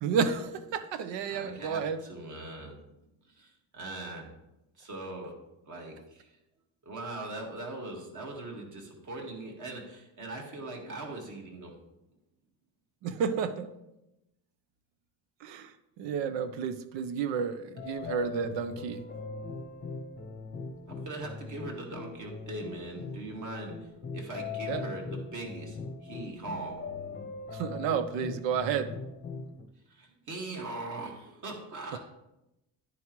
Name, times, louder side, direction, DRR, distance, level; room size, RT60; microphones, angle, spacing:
voice 1, 0.0-2.0 13.0-13.7 15.4-15.7 16.0-19.0 24.7-24.9 27.5-28.9, right 6 dB, 90° right, 12 dB, 0.9 m, -31 dB
voice 2, 1.3-2.8 3.3-4.3 4.8-5.4 5.7-6.3 6.8-11.7 17.8-18.2 20.9-26.8 29.9-32.0, right 2 dB, 45° right, 0 dB, 1.9 m, -41 dB
sound 1, 17.8-29.6, left 4 dB, 25° left, 0.7 m, -41 dB
10.0 x 9.5 x 3.1 m, 0.92 s
cardioid pair, 160°, 42 cm